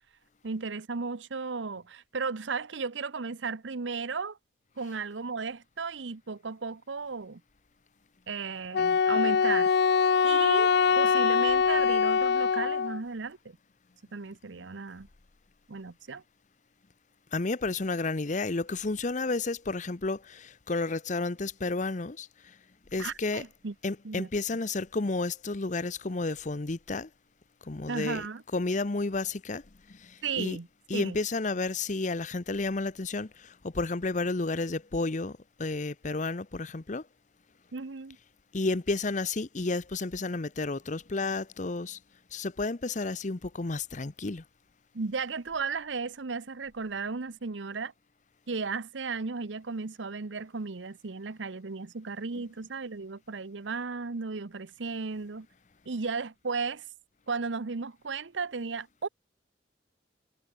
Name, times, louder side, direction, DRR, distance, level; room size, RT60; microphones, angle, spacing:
voice 1, 0.4-4.4 4.8-7.4 8.3-9.7 10.2-10.7 11.0-13.6 14.1-15.1 15.7-16.2 23.0-23.7 24.0-24.3 27.9-28.4 30.2-30.7 30.9-31.2 37.7-38.2 44.9-47.9 48.5-55.5 55.9-56.8 57.3-59.1, right 4 dB, 80° right, 0.8 m, -35 dB
Wind instrument woodwind instrument, 8.7-13.0, left 6 dB, 60° left, 0.4 m, -23 dB
voice 2, 17.3-22.3 22.9-23.4 23.8-27.1 27.7-28.2 28.5-29.6 30.0-30.6 30.9-37.0 38.5-42.0 42.3-44.4, left 3 dB, 40° left, 0.8 m, -31 dB
head